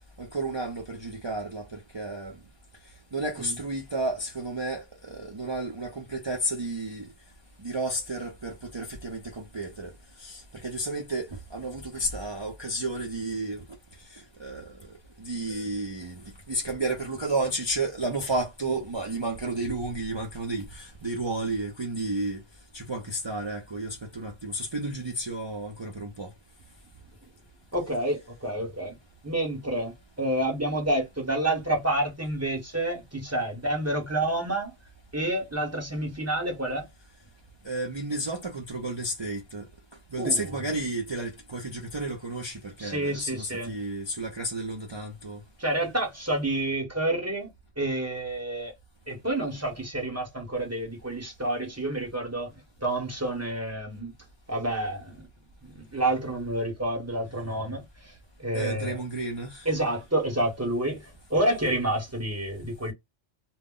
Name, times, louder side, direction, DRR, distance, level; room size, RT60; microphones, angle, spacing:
voice 1, 0.2-2.3 3.1-7.1 7.6-9.9 10.2-13.6 14.4-14.7 15.2-16.2 16.5-22.4 22.7-26.3 37.6-39.6 40.1-45.4 58.5-59.7, right 2 dB, 40° right, 0.4 m, -32 dB
voice 2, 27.7-28.9 29.2-34.7 35.1-36.9 40.2-40.6 42.8-43.8 45.6-47.5 47.8-48.7 49.1-52.5 52.8-54.1 54.5-55.2 55.6-58.1 58.4-59.0 59.6-62.9, right 1 dB, 15° right, 0.8 m, -29 dB
2.2 x 2.0 x 3.6 m
omnidirectional pair, 1.2 m